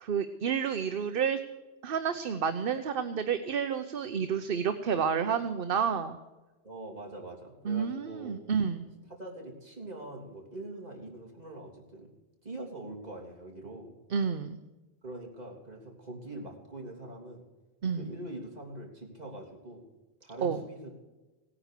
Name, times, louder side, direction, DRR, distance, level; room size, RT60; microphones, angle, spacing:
voice 1, 0.0-1.4 1.8-6.2 7.6-8.9 14.1-14.6 17.8-18.1 20.4-20.6, right 7 dB, 60° right, 9 dB, 1.0 m, -30 dB
voice 2, 6.6-8.3 8.8-12.1 12.4-14.0 15.0-17.5 17.9-19.8 20.2-20.9, right 1 dB, 40° right, -2 dB, 3.5 m, -43 dB
17.5 x 9.9 x 6.6 m, 1.1 s
omnidirectional pair, 1.1 m